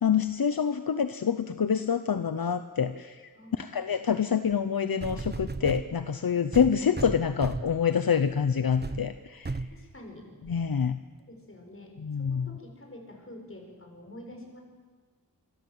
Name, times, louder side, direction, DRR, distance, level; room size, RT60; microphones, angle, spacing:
voice 1, 0.0-9.6 10.5-11.0 12.0-12.6, left 7 dB, 75° left, 10 dB, 1.0 m, -27 dB
sound 1, 4.5-4.6 5.0-5.9 6.5-7.8 8.3-8.4 8.8-9.0 9.4-9.8 10.5-10.6, right 3 dB, 30° right, 1.1 m, -34 dB
voice 2, 9.7-10.2 11.2-11.9 12.2-14.6, left 1 dB, 35° left, 2 dB, 7.2 m, -47 dB
26.5 x 24.5 x 8.0 m, 1.4 s
wide cardioid pair, 90°, 36 cm